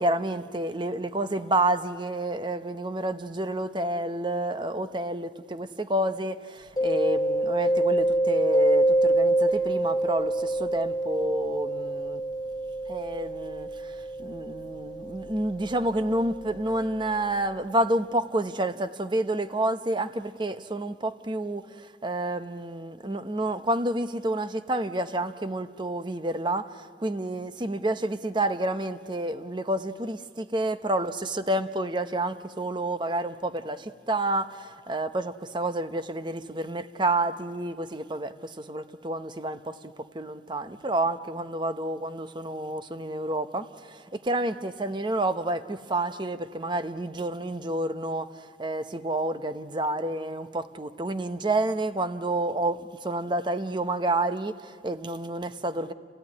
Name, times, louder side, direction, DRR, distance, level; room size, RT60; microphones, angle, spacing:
voice 1, 0.0-12.2 12.9-13.9 14.2-39.7 40.1-55.9, right 1 dB, 25° right, 0.8 m, -29 dB
Mallet percussion, 6.8-16.3, right 1 dB, 20° left, 1.9 m, -26 dB
28.5 x 17.0 x 9.6 m
head